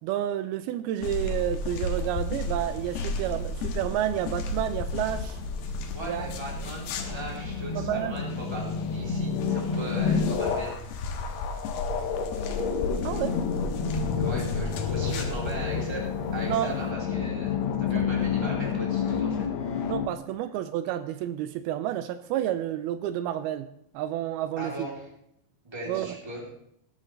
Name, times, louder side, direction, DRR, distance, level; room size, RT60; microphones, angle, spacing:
voice 1, 0.0-5.4 6.1-6.3 7.8-8.1 13.0-13.4 16.5-16.7 17.5-17.6 19.9-23.7 23.9-24.9 25.9-26.1, right 12 dB, 80° right, 11 dB, 2.4 m, -30 dB
sound 1, 1.0-16.9, left 2 dB, 90° left, 3.2 m, -34 dB
sound 2, 3.6-20.1, left 6 dB, 75° left, 1.6 m, -30 dB
voice 2, 5.9-10.8 14.2-19.5 24.6-25.1 25.6-26.4, right 1 dB, 5° right, -3 dB, 2.6 m, -38 dB
19.0 x 10.5 x 3.3 m, 0.76 s
omnidirectional pair, 4.5 m